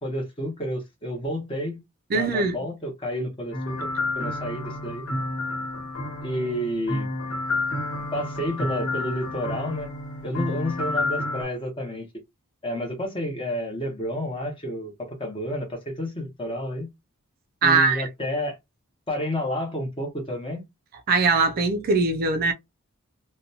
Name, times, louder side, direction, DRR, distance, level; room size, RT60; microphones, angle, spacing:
voice 1, 0.0-1.8 2.1-3.9 4.2-5.1 6.2-7.1 8.1-9.9 10.2-12.0 12.6-16.9 17.6-18.6 19.1-20.6, equal, 25° left, 1.0 m, -30 dB
voice 2, 2.1-2.6 17.6-18.1 21.1-22.5, right 4 dB, 40° right, 0.4 m, -21 dB
sound 1, 3.5-11.4, left 2 dB, 60° left, 1.3 m, -30 dB
2.6 x 2.2 x 2.7 m
head